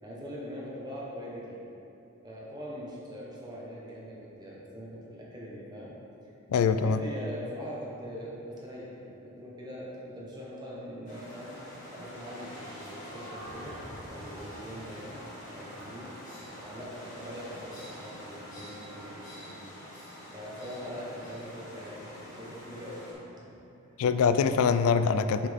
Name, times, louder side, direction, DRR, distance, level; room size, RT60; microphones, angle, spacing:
voice 1, 0.0-1.6 2.2-5.9 6.7-11.6 11.8-16.1 16.6-19.5 20.3-23.5 23.9-24.0, equal, 20° right, -5 dB, 1.1 m, -42 dB
voice 2, 6.5-7.0 24.0-25.5, left 5 dB, 85° left, 11 dB, 0.3 m, -24 dB
sound 1, 11.1-23.1, equal, 35° left, 1.5 m, -45 dB
sound 2, 13.3-15.5, right 1 dB, 40° right, 0.6 m, -50 dB
6.6 x 5.8 x 3.5 m, 2.8 s
head